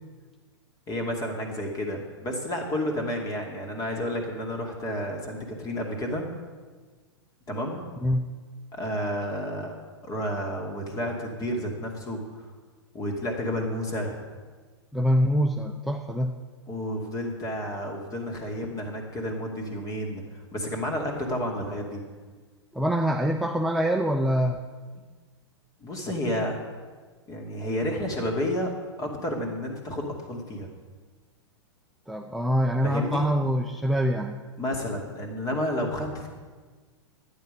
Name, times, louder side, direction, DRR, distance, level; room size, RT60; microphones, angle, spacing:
voice 1, 0.9-6.3 7.5-7.8 8.7-9.7 10.0-12.2 12.9-14.2 16.7-22.0 25.8-26.6 27.3-28.7 29.0-30.7 32.8-33.3 34.6-36.3, equal, 25° left, 2 dB, 2.4 m, -31 dB
voice 2, 14.9-16.3 22.7-24.6 32.1-34.4, equal, ahead, 2 dB, 0.5 m, -24 dB
12.0 x 9.4 x 5.3 m, 1.4 s
hypercardioid pair, 110°, 15 cm